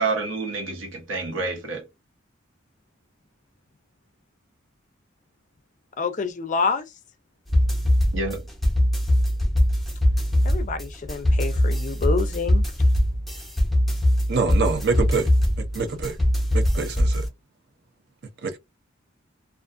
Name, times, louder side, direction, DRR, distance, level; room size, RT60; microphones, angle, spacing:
voice 1, 0.0-1.8 8.1-8.5, right 3 dB, 75° right, 0.9 m, -28 dB
voice 2, 6.0-6.8 10.4-12.6, left 4 dB, 40° left, 0.4 m, -27 dB
sound 1, 7.5-17.3, left 1 dB, ahead, 0.7 m, -22 dB
voice 3, 14.3-15.3 15.6-16.2 16.5-17.3 18.4-18.6, right 4 dB, 55° right, 0.6 m, -25 dB
2.4 x 2.4 x 2.4 m
head